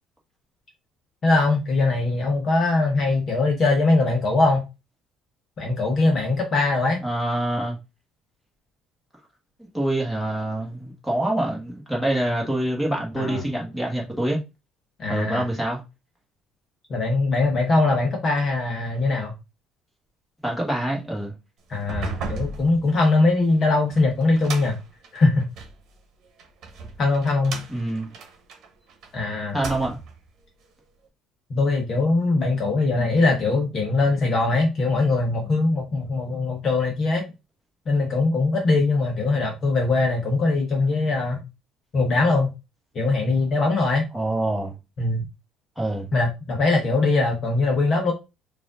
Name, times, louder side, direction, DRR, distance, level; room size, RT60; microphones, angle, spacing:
voice 1, 1.2-4.6 5.6-7.0 13.2-13.4 15.0-15.4 16.9-19.3 21.7-24.8 25.1-25.5 27.0-27.6 29.1-29.6 31.5-37.2 37.9-41.4 41.9-42.5 42.9-44.0 45.0-45.2 46.1-48.1, left 3 dB, 30° left, 0.9 m, -21 dB
voice 2, 7.0-7.8 9.6-14.4 15.1-15.8 20.4-21.3 27.7-28.1 29.5-30.0 44.1-44.7 45.8-46.1, right 1 dB, ahead, 1.4 m, -26 dB
sound 1, 21.7-25.8 26.4-29.1 29.5-30.2, right 4 dB, 45° right, 1.3 m, -36 dB
4.8 x 2.5 x 3.7 m
cardioid pair, 170°, 0 cm